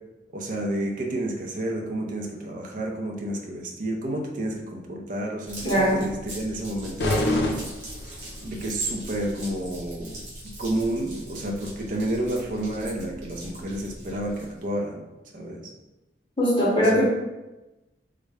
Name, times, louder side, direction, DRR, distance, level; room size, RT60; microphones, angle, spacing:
voice 1, 0.3-7.7 8.4-10.2 10.6-15.0 15.3-15.7 16.8-17.0, right 1 dB, 45° right, 0 dB, 0.5 m, -30 dB
sound 1, 5.5-14.6, right 1 dB, 80° right, 1.5 m, -41 dB
voice 2, 5.6-6.0 16.4-17.0, equal, 25° left, -5 dB, 0.7 m, -20 dB
sound 2, 7.0-8.5, left 1 dB, 60° left, 0.5 m, -26 dB
3.6 x 2.1 x 3.3 m, 1.0 s
head